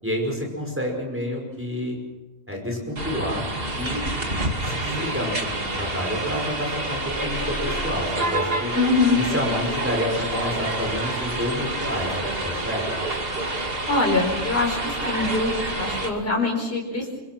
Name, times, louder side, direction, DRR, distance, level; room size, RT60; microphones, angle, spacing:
voice 1, 0.0-2.0 2.5-3.5 3.7-4.1 4.6-8.7 9.1-12.8, left 1 dB, 10° right, 0 dB, 5.7 m, -29 dB
sound 1, 3.0-16.1, right 2 dB, 50° right, 2.7 m, -28 dB
voice 2, 8.7-9.2 13.9-14.8 15.0-17.2, left 3 dB, 50° left, -1 dB, 5.2 m, -23 dB
26.5 x 24.0 x 6.1 m, 1.1 s
omnidirectional pair, 1.3 m